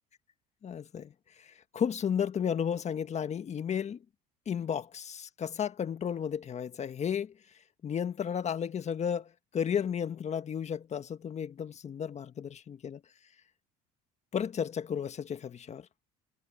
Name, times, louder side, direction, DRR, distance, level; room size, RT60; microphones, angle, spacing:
voice 1, 0.6-1.1 1.4-4.0 4.5-7.3 7.8-13.0 14.3-15.9, left 8 dB, 35° left, 1.6 m, -33 dB
supercardioid pair, 95°, 19 cm